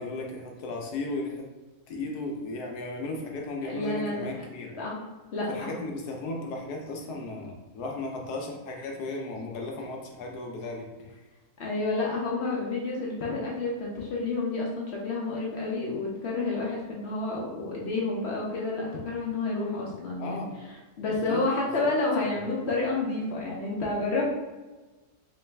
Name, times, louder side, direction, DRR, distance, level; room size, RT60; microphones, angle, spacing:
voice 1, 0.0-1.4 1.9-4.7 5.5-11.2 20.2-20.5 21.1-21.9 22.3-22.4, left 2 dB, 80° left, 1 dB, 1.2 m, -35 dB
voice 2, 3.6-4.3 4.6-5.0 5.3-5.7 11.6-20.4 21.0-24.3, left 3 dB, 55° left, -3 dB, 0.8 m, -30 dB
3.2 x 3.0 x 3.3 m, 1.2 s
omnidirectional pair, 1.7 m